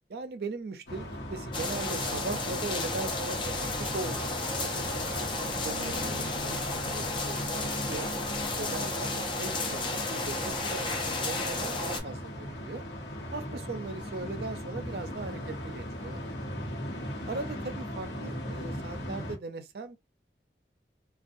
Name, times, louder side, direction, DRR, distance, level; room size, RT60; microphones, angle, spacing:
voice 1, 0.1-8.1 8.6-12.8 13.3-16.3 17.3-20.0, right 3 dB, 65° right, 0.4 m, -39 dB
sound 1, 0.9-19.4, equal, 90° left, 0.9 m, -38 dB
sound 2, 1.5-12.0, left 3 dB, 30° left, 0.4 m, -33 dB
2.5 x 2.3 x 2.5 m
head